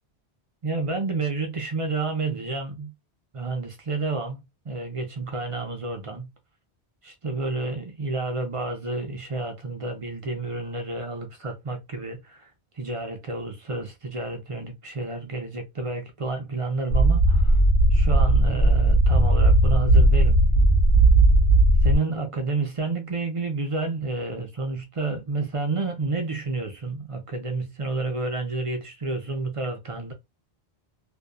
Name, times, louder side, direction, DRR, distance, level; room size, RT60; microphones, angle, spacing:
voice 1, 0.6-2.9 3.3-6.3 7.0-12.5 12.7-17.6 17.9-20.4 21.8-30.1, right 3 dB, 45° right, 0.5 m, -30 dB
sound 1, 16.9-22.0, right 1 dB, 70° left, 0.9 m, -17 dB
2.6 x 2.2 x 2.2 m
omnidirectional pair, 1.1 m